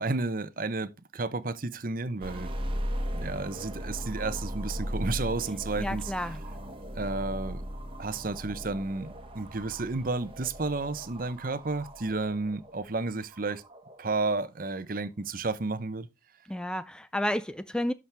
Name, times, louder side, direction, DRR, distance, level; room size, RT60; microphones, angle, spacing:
voice 1, 0.0-2.5 3.1-6.1 6.9-7.6 8.0-13.6 14.0-16.1, right 3 dB, 50° right, 0.8 m, -32 dB
sound 1, 2.2-14.4, equal, 30° right, 1.5 m, -37 dB
voice 2, 5.8-6.4 16.5-17.9, left 1 dB, 5° left, 0.4 m, -31 dB
11.5 x 6.2 x 3.4 m
head